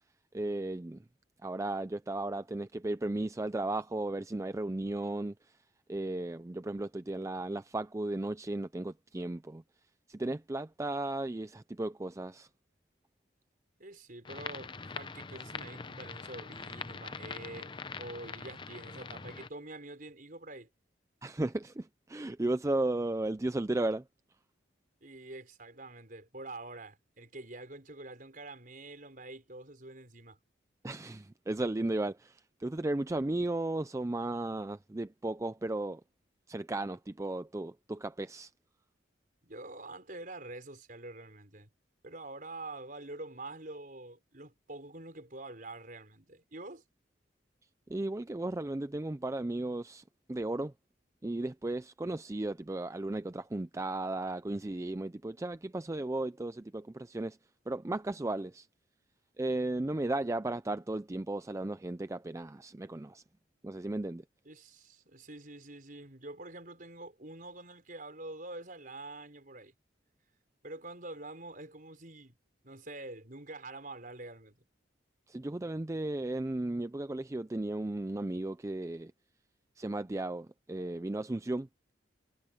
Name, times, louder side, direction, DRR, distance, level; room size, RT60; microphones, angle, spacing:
voice 1, 0.3-1.0 1.4-5.6 5.9-9.6 10.1-12.5 21.2-24.0 30.8-36.0 36.5-38.5 47.9-50.0 50.3-50.7 51.2-57.4 57.7-58.7 59.4-63.2 63.6-64.2 75.3-79.1 79.8-81.7, right 2 dB, 15° right, 0.4 m, -35 dB
voice 2, 13.8-20.7 25.0-30.4 39.4-41.7 42.0-46.8 64.5-69.7 70.6-72.3 72.6-74.6, right 2 dB, 45° right, 5.4 m, -46 dB
sound 1, 14.3-19.5, left 4 dB, 25° left, 0.6 m, -43 dB
head